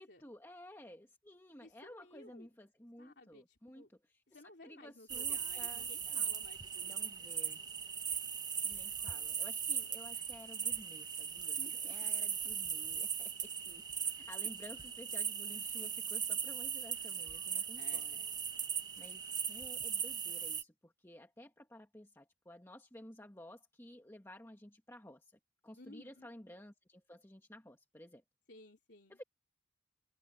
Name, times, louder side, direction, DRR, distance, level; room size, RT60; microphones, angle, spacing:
voice 1, 0.0-4.2 4.6-6.3 6.8-7.6 8.6-18.2 19.0-28.2 29.1-29.2, left 1 dB, 15° left, 1.6 m, -54 dB
voice 2, 1.6-2.5 3.0-3.9 4.3-7.1 11.6-12.1 12.9-13.1 17.8-18.4 25.8-26.3 28.5-29.2, left 2 dB, 60° left, 3.6 m, -57 dB
sound 1, 5.1-20.6, right 7 dB, 20° right, 1.1 m, -38 dB
head